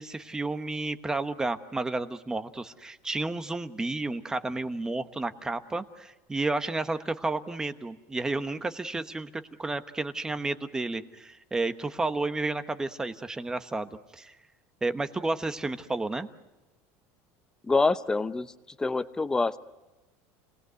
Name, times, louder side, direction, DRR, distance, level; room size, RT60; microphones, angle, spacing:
voice 1, 0.0-9.3 9.6-14.4 14.8-16.3, right 2 dB, 10° right, 10 dB, 1.0 m, -31 dB
voice 2, 17.6-18.5 18.8-19.6, left 3 dB, 10° left, 13 dB, 0.8 m, -26 dB
29.5 x 19.5 x 8.2 m, 1.1 s
cardioid pair, 160°, 7 cm